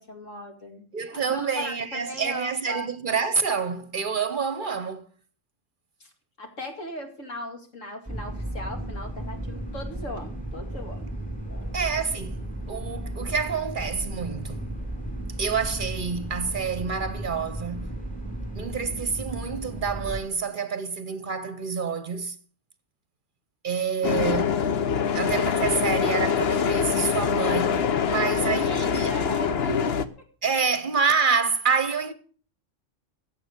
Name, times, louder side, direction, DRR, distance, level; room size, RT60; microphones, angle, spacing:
voice 1, 0.0-2.9 6.0-6.1 6.4-11.1 11.5-11.8 14.9-15.0 27.9-29.9, left 1 dB, 80° left, 2.7 m, -37 dB
voice 2, 0.9-5.1 11.7-14.7 15.4-17.9 18.6-22.4 23.6-24.6 25.1-29.2 30.4-32.1, right 5 dB, 45° right, 0.9 m, -27 dB
sound 1, 8.1-20.2, right 1 dB, 5° left, 3.2 m, -34 dB
sound 2, 24.0-30.1, left 7 dB, 55° left, 1.0 m, -24 dB
16.0 x 7.4 x 6.5 m
omnidirectional pair, 1.3 m